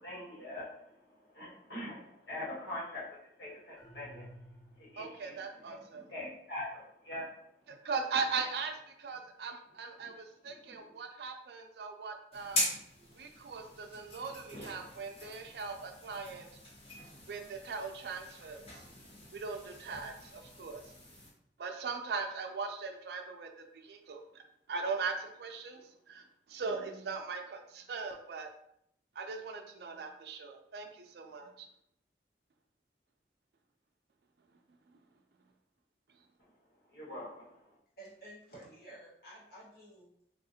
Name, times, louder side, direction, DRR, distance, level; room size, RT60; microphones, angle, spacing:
voice 1, 0.0-3.0 3.4-4.3 4.8-5.4 5.7-7.3 10.4-10.8 36.9-37.7, left 1 dB, 80° left, -7 dB, 1.5 m, -43 dB
sound 1, 3.8-5.2, equal, ahead, 0.8 m, -53 dB
voice 2, 5.0-6.1 7.7-12.6 13.2-16.5 17.3-18.8 19.3-20.9 21.6-24.4 24.7-28.5 29.2-31.7, right 4 dB, 65° right, 4 dB, 0.4 m, -39 dB
sound 2, 12.3-21.3, left 1 dB, 35° left, 0.8 m, -42 dB
voice 3, 38.0-40.1, right 1 dB, 55° left, -6 dB, 1.2 m, -52 dB
3.5 x 2.4 x 2.7 m, 0.73 s
head